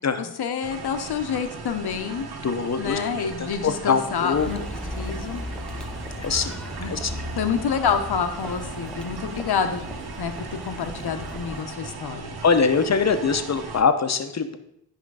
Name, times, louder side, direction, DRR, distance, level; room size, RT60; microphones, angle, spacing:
voice 1, 0.2-2.3 2.8-5.4 6.8-6.9 7.4-9.8 10.2-12.4, left 6 dB, 60° left, 7 dB, 1.1 m, -28 dB
sound 1, 0.6-13.8, right 4 dB, 60° right, 1.2 m, -38 dB
voice 2, 2.4-3.3 3.6-4.5 6.2-6.5 6.9-7.1 12.4-14.6, left 5 dB, 40° left, 9 dB, 0.9 m, -23 dB
sound 2, 4.3-11.6, left 1 dB, ahead, 0.7 m, -36 dB
10.5 x 4.9 x 4.8 m, 0.79 s
cardioid pair, 60°, 43 cm